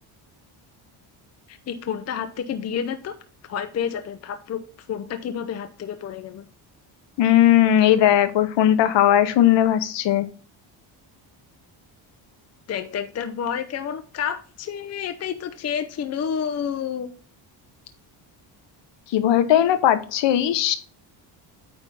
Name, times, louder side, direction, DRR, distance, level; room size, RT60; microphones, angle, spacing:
voice 1, 1.5-3.1 3.4-4.6 4.9-6.5 12.7-17.1, left 8 dB, 35° left, 8 dB, 0.6 m, -29 dB
voice 2, 7.2-10.3 19.1-20.8, left 11 dB, 60° left, 11 dB, 1.0 m, -18 dB
9.2 x 3.6 x 5.4 m, 0.39 s
cardioid pair, 140°, 49 cm